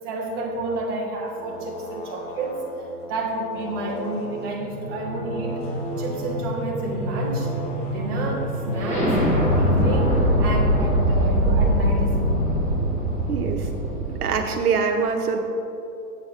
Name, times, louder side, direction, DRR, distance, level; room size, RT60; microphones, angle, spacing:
voice 1, 0.0-2.7 3.0-5.6 6.0-7.5 7.9-9.2 9.6-12.3, right 2 dB, 15° right, -2 dB, 0.4 m, -30 dB
sound 1, 1.2-9.9, equal, 50° left, 1.1 m, -37 dB
sound 2, 4.3-14.4, equal, 15° left, 1.2 m, -23 dB
voice 2, 13.3-13.7 14.1-15.4, right 5 dB, 70° right, 4 dB, 1.0 m, -24 dB
7.6 x 6.3 x 3.6 m, 2.8 s
hypercardioid pair, 125°, 47 cm